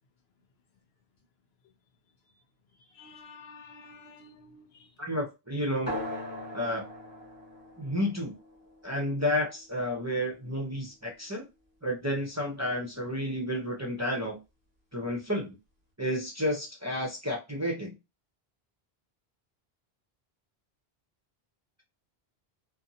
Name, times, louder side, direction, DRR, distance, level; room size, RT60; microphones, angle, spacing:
voice 1, 2.9-4.9, left 4 dB, 75° left, 0.9 m, -51 dB
voice 2, 5.0-6.0 6.5-6.8 7.8-8.3 8.8-11.4 11.8-14.4 14.9-15.6 16.0-17.9, left 1 dB, 20° right, 0.6 m, -31 dB
sound 1, 5.9-10.9, left 1 dB, 20° left, 1.1 m, -41 dB
2.6 x 2.6 x 2.7 m
omnidirectional pair, 1.1 m